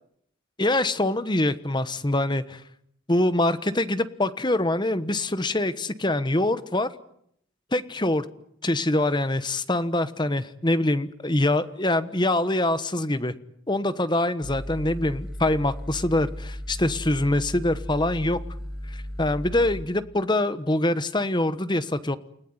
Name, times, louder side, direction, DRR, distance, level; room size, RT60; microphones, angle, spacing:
voice 1, 0.6-2.6 3.1-6.9 7.7-8.2 8.6-13.3 13.7-18.4 18.9-22.2, left 1 dB, 20° left, 13 dB, 1.2 m, -24 dB
sound 1, 14.4-19.8, equal, ahead, 7.2 m, -35 dB
29.5 x 18.0 x 9.8 m, 0.72 s
head